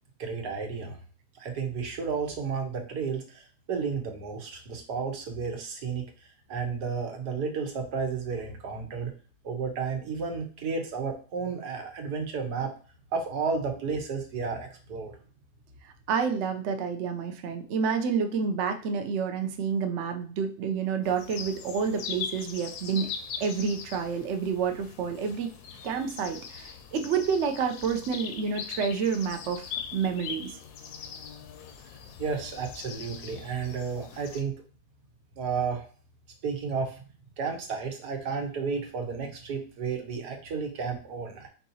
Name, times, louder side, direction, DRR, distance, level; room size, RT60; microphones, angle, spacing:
voice 1, 0.2-1.0 1.4-6.1 6.5-9.1 9.4-12.7 13.1-15.2 32.2-34.6 35.4-35.9 36.4-37.0 37.4-41.5, right 5 dB, 80° right, 4 dB, 1.5 m, -32 dB
voice 2, 15.8-23.1 23.4-25.5 25.8-30.5, right 6 dB, 60° right, 5 dB, 0.8 m, -29 dB
sound 1, 21.0-34.4, left 7 dB, 75° left, 1.1 m, -41 dB
4.7 x 4.0 x 2.7 m, 0.38 s
omnidirectional pair, 1.7 m